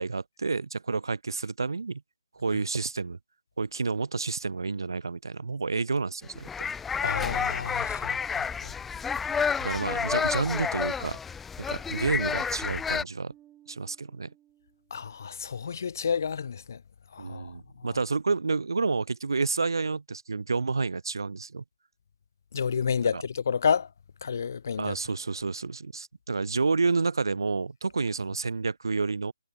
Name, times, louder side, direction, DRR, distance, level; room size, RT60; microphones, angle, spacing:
voice 1, 0.0-2.0 2.3-3.2 3.6-6.5 9.6-11.2 11.7-13.3 13.7-14.3 17.2-21.6 23.1-23.2 24.8-29.3, right 4 dB, 80° right, 0.6 m, -29 dB
sound 1, 6.3-13.0, left 6 dB, 5° left, 0.6 m, -30 dB
voice 2, 7.0-8.7 14.9-16.8 17.1-17.5 22.5-23.9 24.2-24.9, left 6 dB, 50° left, 0.6 m, -30 dB
Bass guitar, 13.3-15.7, right 12 dB, 10° right, 5.9 m, -61 dB
hypercardioid pair, 165°, 2 cm